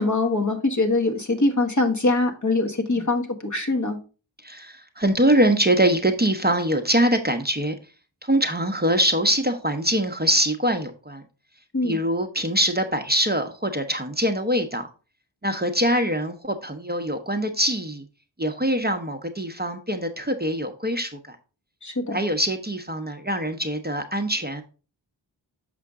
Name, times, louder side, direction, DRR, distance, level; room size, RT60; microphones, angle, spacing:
voice 1, 0.0-4.0 11.7-12.0 21.8-22.2, left 2 dB, 40° left, 3 dB, 1.3 m, -23 dB
voice 2, 4.4-7.8 8.2-11.2 11.8-14.9 15.4-18.0 18.4-21.4 22.1-24.6, equal, 20° right, 5 dB, 0.8 m, -23 dB
6.8 x 5.0 x 3.6 m, 0.34 s
wide cardioid pair, 45°, 46 cm